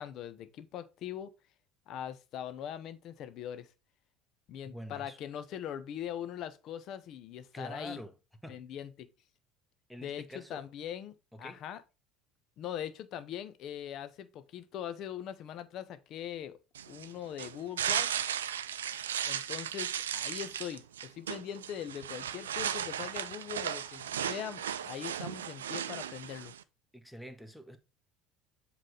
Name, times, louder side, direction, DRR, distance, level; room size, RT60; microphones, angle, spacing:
voice 1, 0.0-1.3 1.9-3.7 4.5-8.0 8.5-9.1 10.0-11.8 12.6-16.6 16.9-18.1 19.2-26.5, left 10 dB, 55° left, 0.8 m, -41 dB
voice 2, 4.6-5.2 7.5-8.1 8.4-8.6 9.9-10.7 11.3-11.6 26.9-27.8, equal, 5° left, 1.3 m, -46 dB
sound 1, 16.7-26.6, right 9 dB, 85° right, 0.4 m, -36 dB
7.6 x 3.3 x 4.8 m
hypercardioid pair, 70°, 0 cm